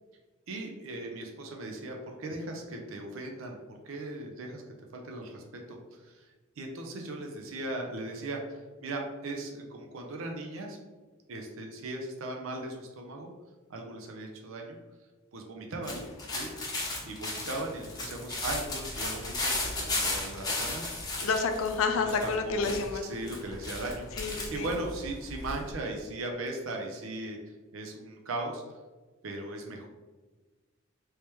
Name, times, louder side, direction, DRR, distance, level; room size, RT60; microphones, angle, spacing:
voice 1, 0.5-3.6 3.8-4.6 4.9-5.4 5.7-10.8 11.3-13.3 13.7-14.8 15.3-16.0 16.3-16.5 16.7-20.9 22.0-22.8 23.0-28.6 29.2-29.9, right 2 dB, 80° right, 2 dB, 0.5 m, -38 dB
sound 1, 15.8-25.7, left 2 dB, 20° left, 0.7 m, -35 dB
voice 2, 21.2-23.1 24.2-24.7, left 4 dB, 90° left, 6 dB, 0.5 m, -29 dB
3.3 x 3.1 x 3.0 m, 1.3 s
head